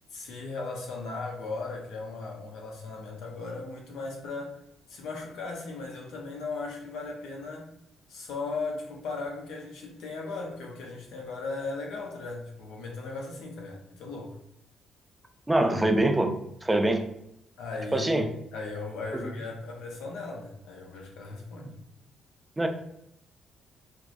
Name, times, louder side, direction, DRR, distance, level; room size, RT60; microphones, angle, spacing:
voice 1, 0.1-4.6 4.9-7.7 8.1-14.4 17.6-21.7, left 3 dB, 85° left, 0 dB, 0.8 m, -37 dB
voice 2, 15.5-16.3 16.6-17.0 17.9-18.3 21.6-21.7 22.6-22.7, right 1 dB, 15° right, 4 dB, 0.5 m, -24 dB
4.4 x 2.2 x 2.6 m, 0.77 s
cardioid pair, 90°, 0 cm